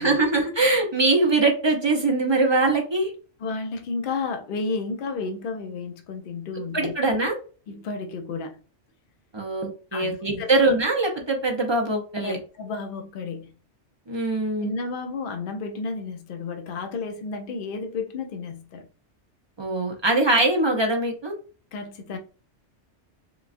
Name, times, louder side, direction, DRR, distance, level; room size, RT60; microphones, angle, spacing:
voice 1, 0.0-3.1 6.7-7.4 9.3-12.4 14.1-14.7 19.6-21.3, right 2 dB, 30° right, 0.5 m, -22 dB
voice 2, 3.4-6.9 7.7-8.6 9.9-10.5 12.2-13.5 14.6-18.9 21.7-22.2, left 4 dB, 55° left, 0.7 m, -32 dB
3.9 x 2.3 x 2.5 m
omnidirectional pair, 1.2 m